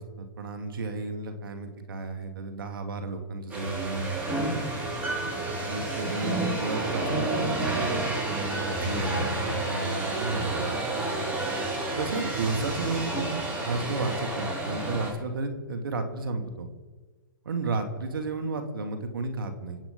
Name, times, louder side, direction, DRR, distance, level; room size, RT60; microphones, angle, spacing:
voice 1, 0.0-4.1 5.6-11.1 12.0-16.7 17.4-19.8, right 3 dB, 75° right, 5 dB, 2.5 m, -33 dB
sound 1, 3.5-15.1, right 2 dB, 15° right, 5.4 m, -30 dB
27.0 x 9.0 x 5.5 m, 1.3 s
hypercardioid pair, 125°, 12 cm